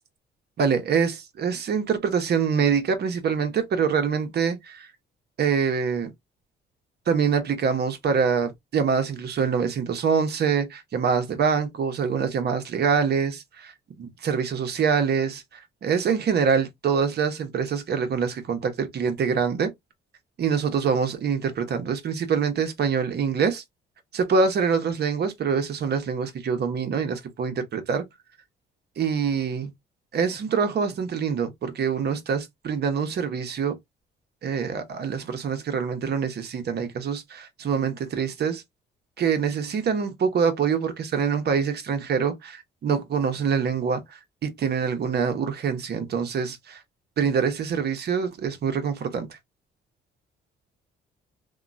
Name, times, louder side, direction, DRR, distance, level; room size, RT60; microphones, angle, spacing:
voice 1, 0.6-4.9 5.4-6.1 7.1-19.7 20.4-23.6 24.1-28.0 29.0-29.7 30.1-33.8 34.4-38.6 39.2-46.8 47.2-49.3, right 6 dB, 55° right, 0.9 m, -25 dB
2.9 x 2.2 x 2.5 m
cardioid pair, 90°, 20 cm